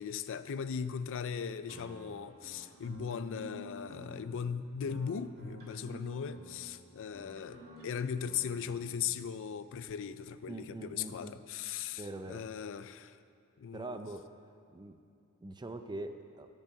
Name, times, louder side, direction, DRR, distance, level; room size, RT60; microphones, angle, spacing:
voice 1, 0.0-13.2 13.6-14.0, left 7 dB, 60° left, 13 dB, 0.4 m, -38 dB
sound 1, 1.7-9.1, right 1 dB, 45° right, 2.8 m, -51 dB
voice 2, 10.5-11.4 12.0-12.4 13.7-14.3 14.7-15.0 15.4-16.5, right 2 dB, 20° right, 7 dB, 0.4 m, -43 dB
10.5 x 5.4 x 8.3 m, 2.6 s
head